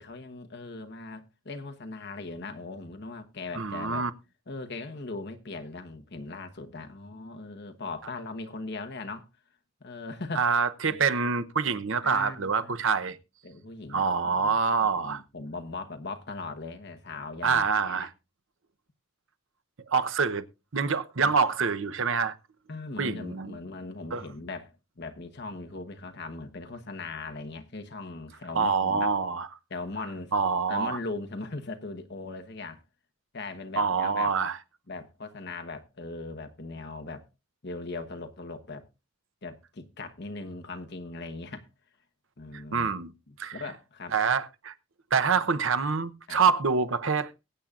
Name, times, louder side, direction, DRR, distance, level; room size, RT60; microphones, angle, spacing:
voice 1, 0.0-4.1 4.5-9.3 9.8-11.0 12.0-13.1 13.4-18.1 21.2-21.3 22.7-29.1 29.7-30.3 30.7-32.8 33.3-34.3 34.9-37.3 37.6-38.9 39.4-41.7 42.4-42.9 43.3-44.1 46.3-46.4, left 3 dB, 50° left, 1.2 m, -39 dB
voice 2, 3.5-4.1 10.4-13.2 13.9-15.2 17.4-18.1 19.9-20.4 20.7-22.3 23.0-23.5 24.1-24.3 28.5-29.5 30.3-31.0 33.8-34.6 42.7-43.1 43.4-43.6 44.1-44.7 45.1-47.3, right 5 dB, 60° right, 0.8 m, -26 dB
22.0 x 8.6 x 2.5 m
head